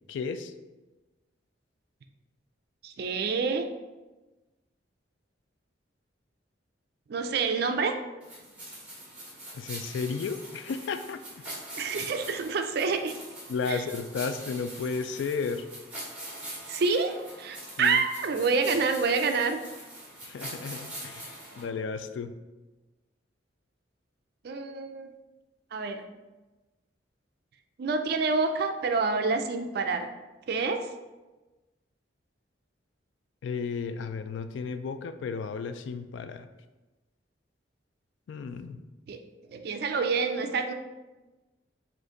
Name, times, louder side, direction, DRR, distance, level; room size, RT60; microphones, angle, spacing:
voice 1, 0.1-0.5 9.5-11.2 13.5-15.6 17.8-18.0 20.2-22.3 33.4-36.5 38.3-38.8, left 5 dB, 70° left, 10 dB, 0.3 m, -33 dB
voice 2, 2.8-3.7 7.1-7.9 11.7-13.1 13.7-13.8 16.4-19.6 24.4-25.1 25.7-26.0 27.8-30.1 30.5-30.9 39.1-39.2 39.5-40.7, right 4 dB, 55° right, 7 dB, 0.4 m, -27 dB
sound 1, 8.2-21.6, right 1 dB, 10° right, 1.3 m, -43 dB
5.1 x 2.5 x 3.7 m, 1.1 s
head